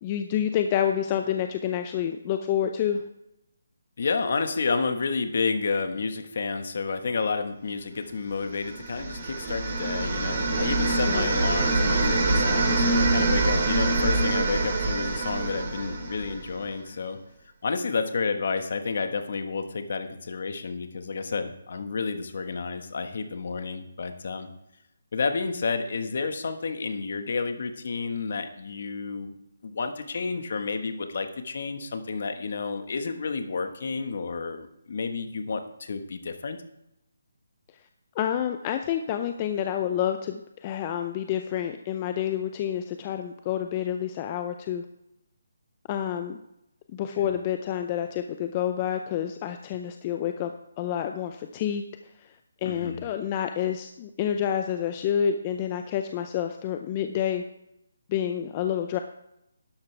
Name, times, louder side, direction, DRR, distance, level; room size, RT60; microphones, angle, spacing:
voice 1, 0.0-3.0 11.1-11.3 38.2-44.8 45.9-46.4 46.9-51.8 52.2-52.3 52.6-57.4 58.1-59.0, left 9 dB, 25° left, 7 dB, 0.5 m, -28 dB
voice 2, 4.0-17.2 17.6-24.5 25.1-29.3 29.6-36.6 47.2-47.3 52.6-53.0, left 4 dB, 55° left, 7 dB, 1.4 m, -30 dB
sound 1, 8.6-16.6, right 2 dB, 45° right, 3.6 m, -25 dB
12.0 x 10.5 x 3.4 m, 0.83 s
hypercardioid pair, 160°, 0 cm